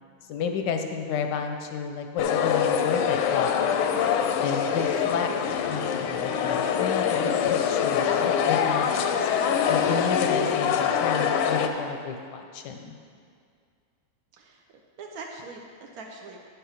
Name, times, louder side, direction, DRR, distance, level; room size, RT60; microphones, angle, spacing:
voice 1, 0.3-3.5 4.4-5.3 5.6-9.3 9.7-13.0, left 6 dB, 70° left, 5 dB, 1.0 m, -31 dB
sound 1, 2.2-11.7, left 8 dB, 85° left, 1.5 m, -24 dB
voice 2, 15.0-16.4, right 3 dB, 80° right, 1 dB, 0.8 m, -41 dB
9.8 x 5.7 x 5.7 m, 2.2 s
omnidirectional pair, 2.4 m